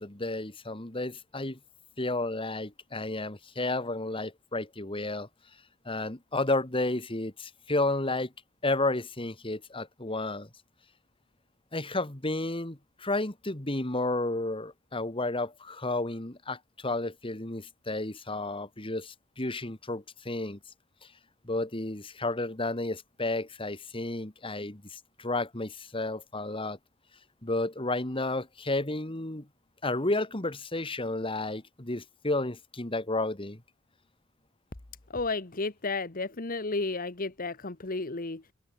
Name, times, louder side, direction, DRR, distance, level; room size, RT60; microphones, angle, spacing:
voice 1, 0.0-1.6 2.0-5.3 5.9-8.3 8.6-10.5 11.7-20.6 21.4-26.8 27.4-29.5 29.8-33.6, left 2 dB, 25° left, 2.3 m, -32 dB
voice 2, 35.1-38.4, left 3 dB, 45° left, 1.4 m, -32 dB
open air
head